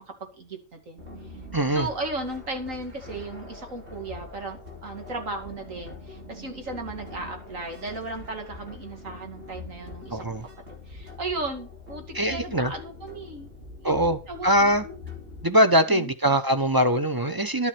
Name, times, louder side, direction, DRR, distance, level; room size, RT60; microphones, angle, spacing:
voice 1, 0.2-1.0 1.7-10.2 10.9-13.5 13.8-15.0 15.9-16.1, right 2 dB, 80° right, 2.8 m, -36 dB
sound 1, 1.0-15.4, left 3 dB, 55° right, 3.2 m, -43 dB
voice 2, 1.5-1.9 10.1-10.4 12.1-12.7 13.8-14.8 15.4-17.7, equal, 20° right, 0.8 m, -22 dB
11.5 x 7.4 x 6.0 m
omnidirectional pair, 1.3 m